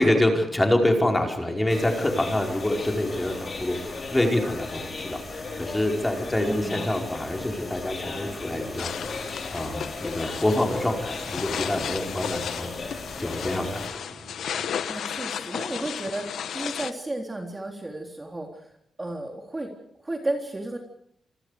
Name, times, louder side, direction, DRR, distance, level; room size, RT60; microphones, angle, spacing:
voice 1, 0.0-8.9 9.5-12.9 13.2-14.0, left 1 dB, 10° left, 2 dB, 5.0 m, -26 dB
sound 1, 0.8-15.2, right 4 dB, 50° right, 6.1 m, -47 dB
sound 2, 1.7-13.9, left 3 dB, 40° left, 6.1 m, -36 dB
voice 2, 6.5-6.9 14.9-18.7 19.0-19.7 20.0-20.8, right 2 dB, 20° right, 2 dB, 3.6 m, -33 dB
sound 3, 8.8-16.9, left 8 dB, 80° left, 1.3 m, -34 dB
28.0 x 25.0 x 5.1 m, 0.69 s
wide cardioid pair, 130°, 0 cm